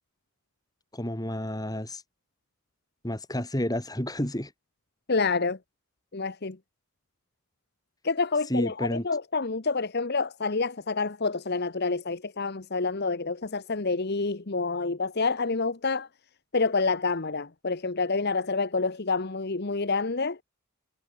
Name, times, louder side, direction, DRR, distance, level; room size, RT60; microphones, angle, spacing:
voice 1, 0.9-2.0 3.0-4.5 8.5-9.1, equal, 15° left, 4.0 m, -30 dB
voice 2, 5.1-5.6 6.1-6.6 8.0-16.1 16.5-20.4, left 4 dB, 50° left, 1.1 m, -28 dB
head